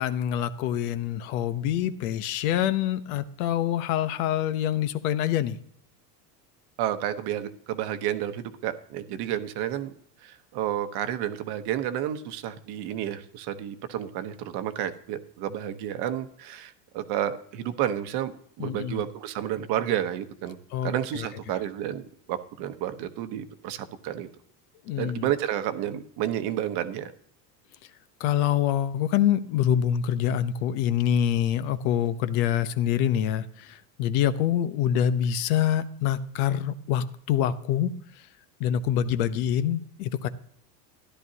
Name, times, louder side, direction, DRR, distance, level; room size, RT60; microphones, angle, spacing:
voice 1, 0.0-5.6 18.6-19.0 20.7-20.9 24.9-25.3 28.2-37.9 38.6-40.3, left 10 dB, 65° left, 12 dB, 0.9 m, -25 dB
voice 2, 6.8-9.9 10.2-20.6 20.8-24.3 25.0-27.1, right 11 dB, 55° right, 11 dB, 1.0 m, -31 dB
13.5 x 11.0 x 2.8 m, 0.65 s
supercardioid pair, 115°, 48 cm